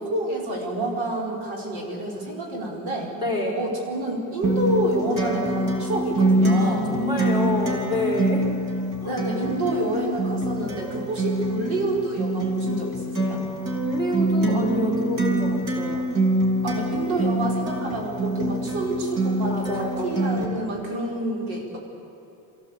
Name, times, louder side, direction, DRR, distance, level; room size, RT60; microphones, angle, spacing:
voice 1, 0.0-3.1 3.5-7.0 9.0-13.5 16.6-21.8, right 1 dB, 85° right, -1 dB, 5.1 m, -28 dB
voice 2, 3.1-3.6 6.5-8.5 9.0-9.1 13.7-16.1 19.5-20.1, left 1 dB, 10° right, -1 dB, 4.1 m, -28 dB
Acoustic guitar, 4.4-20.4, right 1 dB, 45° right, 3.6 m, -25 dB
24.0 x 15.5 x 8.3 m, 2.9 s
cardioid pair, 145°, 46 cm